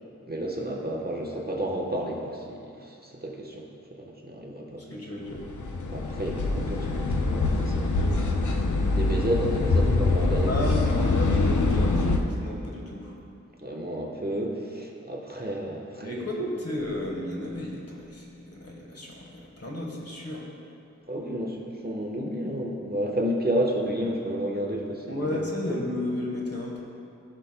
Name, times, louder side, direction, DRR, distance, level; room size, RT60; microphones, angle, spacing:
voice 1, 0.2-3.6 3.9-4.8 5.9-8.5 8.9-10.6 13.6-16.3 21.1-25.3 25.6-25.8, right 1 dB, 35° right, -1 dB, 1.1 m, -31 dB
voice 2, 4.9-5.4 10.5-13.2 16.0-20.5 25.1-26.8, left 1 dB, 55° left, -2 dB, 1.3 m, -33 dB
sound 1, 5.3-12.2, left 3 dB, 90° left, 0.6 m, -24 dB
14.5 x 5.8 x 2.2 m, 2.6 s
wide cardioid pair, 50°, 29 cm